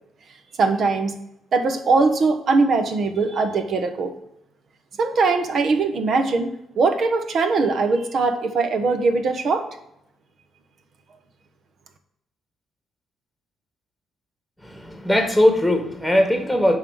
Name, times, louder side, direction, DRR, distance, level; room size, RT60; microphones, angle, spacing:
voice 1, 0.6-1.2 1.5-4.1 5.0-6.5 6.8-9.7, right 4 dB, 55° right, 8 dB, 1.2 m, -21 dB
voice 2, 14.6-16.8, left 1 dB, ahead, 5 dB, 1.8 m, -19 dB
10.5 x 3.8 x 6.3 m, 0.79 s
cardioid pair, 90°, 0 cm